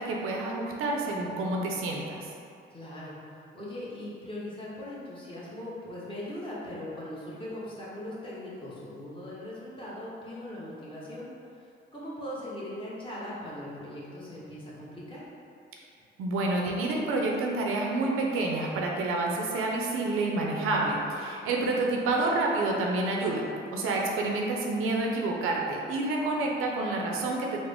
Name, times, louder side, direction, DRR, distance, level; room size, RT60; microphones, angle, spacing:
voice 1, 0.0-2.3 16.2-23.5 23.7-27.6, right 2 dB, 85° right, -1 dB, 0.5 m, -28 dB
voice 2, 2.7-11.3 11.5-15.2 21.4-21.9, left 1 dB, 25° left, -8 dB, 1.0 m, -40 dB
3.7 x 2.1 x 3.4 m, 2.5 s
cardioid pair, 90°, 21 cm